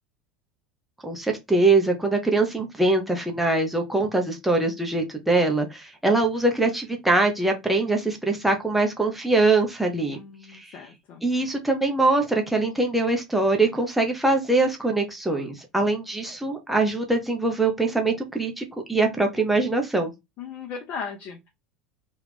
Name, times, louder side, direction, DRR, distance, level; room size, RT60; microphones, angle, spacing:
voice 1, 1.0-10.2 10.5-10.8 11.2-20.1, right 2 dB, 5° right, 0.8 m, -23 dB
voice 2, 10.1-11.2 20.4-21.5, left 6 dB, 45° left, 0.8 m, -37 dB
3.1 x 2.4 x 3.5 m
figure-of-eight pair, 80°, 4 cm